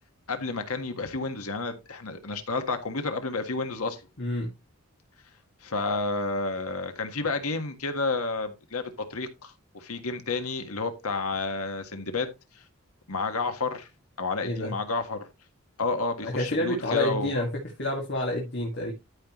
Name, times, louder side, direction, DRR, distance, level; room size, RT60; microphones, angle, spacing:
voice 1, 0.3-4.0 5.6-12.3 12.5-12.6 13.1-13.9 14.2-15.3 15.8-17.4, left 3 dB, 80° left, 1.6 m, -30 dB
voice 2, 4.2-4.5 14.4-14.7 16.2-17.5 17.8-18.9, left 1 dB, 55° left, 2.3 m, -28 dB
13.0 x 5.6 x 3.1 m
head